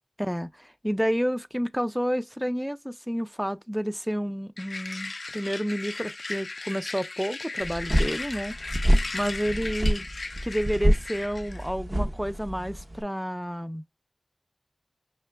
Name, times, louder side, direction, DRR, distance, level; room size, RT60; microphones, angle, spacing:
voice 1, 0.2-8.5 9.1-10.1 10.4-13.8, equal, 5° right, 0.4 m, -30 dB
sound 1, 4.6-11.7, left 3 dB, 75° left, 0.3 m, -36 dB
sound 2, 7.6-13.0, equal, 40° right, 0.7 m, -26 dB
5.7 x 2.2 x 3.2 m
wide cardioid pair, 65°, 0 cm